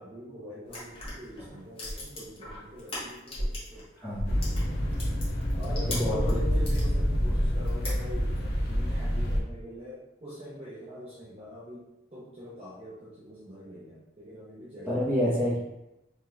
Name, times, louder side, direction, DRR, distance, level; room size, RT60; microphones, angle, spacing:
voice 1, 0.0-3.9 5.5-15.4, equal, 35° right, -8 dB, 0.7 m, -43 dB
sound 1, 0.7-3.8 4.1-6.9 7.3-8.4, left 1 dB, 30° left, 1.4 m, -37 dB
voice 2, 4.0-4.4 5.9-6.2 14.9-15.6, equal, 5° right, -14 dB, 1.3 m, -28 dB
sound 2, 4.3-9.4, equal, 60° left, 0.7 m, -27 dB
3.6 x 3.5 x 3.1 m, 0.95 s
head